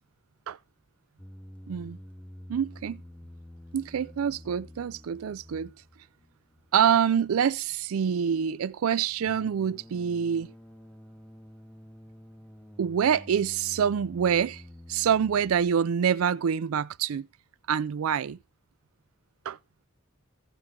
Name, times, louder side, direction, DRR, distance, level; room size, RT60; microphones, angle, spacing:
sound 1, 1.2-15.7, left 1 dB, 5° left, 0.8 m, -49 dB
voice 1, 1.7-2.0 2.5-3.0 3.7-5.7 6.7-10.5 12.8-14.6 14.9-17.3 17.7-18.4 19.5-19.6, right 8 dB, 85° right, 0.4 m, -26 dB
16.0 x 5.9 x 3.7 m
head